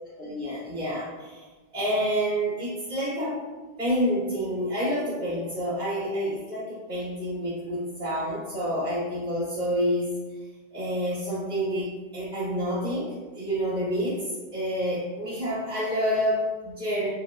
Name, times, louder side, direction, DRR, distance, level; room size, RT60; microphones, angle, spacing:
voice 1, 0.2-1.4 1.7-3.4 3.8-10.1 10.7-14.3 14.5-17.1, equal, 85° right, -17 dB, 2.0 m, -28 dB
4.5 x 2.1 x 2.3 m, 1.3 s
omnidirectional pair, 1.1 m